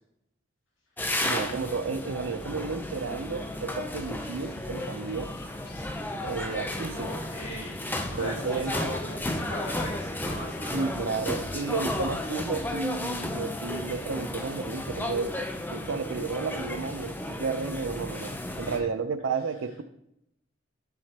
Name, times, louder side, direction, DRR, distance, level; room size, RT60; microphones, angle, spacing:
sound 1, 1.0-18.8, left 1 dB, 10° left, 0.5 m, -33 dB
voice 1, 1.2-5.3 6.2-7.1 8.2-8.8 10.7-15.3 15.7-18.3 18.6-19.8, right 4 dB, 85° right, 11 dB, 0.6 m, -32 dB
sound 2, 3.9-13.0, left 2 dB, 55° left, 0.8 m, -49 dB
voice 2, 6.9-7.8 8.1-10.9 18.6-18.9, equal, 90° left, -2 dB, 2.5 m, -38 dB
10.5 x 4.9 x 2.9 m, 0.79 s
head